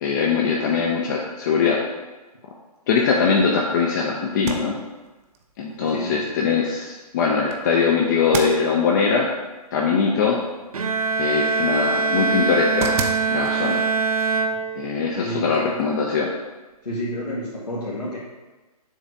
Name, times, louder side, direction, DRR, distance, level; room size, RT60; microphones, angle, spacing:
voice 1, 0.0-1.8 2.9-4.8 5.6-9.3 9.7-10.4 11.2-13.0 13.3-13.8 14.8-16.3, left 5 dB, 30° left, -1 dB, 0.6 m, -21 dB
sound 1, 4.3-15.9, right 6 dB, 20° right, 0.5 m, -37 dB
voice 2, 5.8-6.2 15.2-15.7 16.8-18.2, equal, 85° left, -8 dB, 1.7 m, -30 dB
Bowed string instrument, 10.7-15.2, right 4 dB, 65° right, 0.7 m, -23 dB
7.3 x 3.2 x 5.8 m, 1.2 s
figure-of-eight pair, 130°, 20 cm